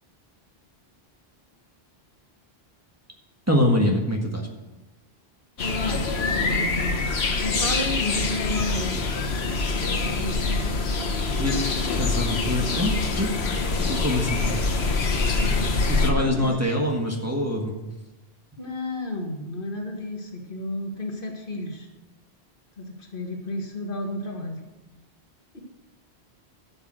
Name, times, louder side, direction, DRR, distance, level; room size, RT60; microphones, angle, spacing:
voice 1, 3.5-4.5 11.4-11.6 12.0-13.3 13.8-14.5 15.9-17.8, left 1 dB, 15° right, 0 dB, 1.5 m, -24 dB
sound 1, 5.6-16.1, left 3 dB, 85° left, 1.4 m, -25 dB
voice 2, 5.6-9.0 9.7-10.7 15.3-16.5 18.6-21.9 22.8-24.6 25.5-25.6, left 1 dB, 55° left, 1 dB, 2.0 m, -32 dB
13.0 x 6.9 x 6.3 m, 1.0 s
omnidirectional pair, 1.0 m